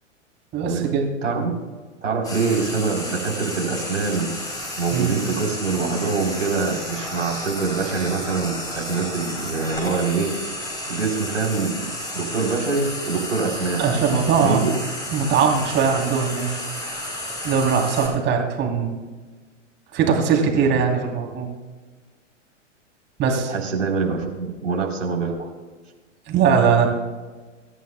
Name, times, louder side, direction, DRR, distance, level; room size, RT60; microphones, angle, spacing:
voice 1, 0.5-1.1 4.9-5.1 13.8-14.7 15.1-16.5 17.4-19.0 19.9-21.5 23.2-23.5 26.3-26.9, right 6 dB, 30° right, 2 dB, 3.0 m, -20 dB
voice 2, 2.0-4.3 4.8-10.4 10.9-13.8 14.4-14.7 20.5-20.8 23.5-25.5, right 4 dB, 80° right, -1 dB, 3.7 m, -24 dB
Frying (food), 2.2-18.1, left 1 dB, 10° left, 4.5 m, -32 dB
25.5 x 13.5 x 2.2 m, 1.4 s
figure-of-eight pair, 105°, 38 cm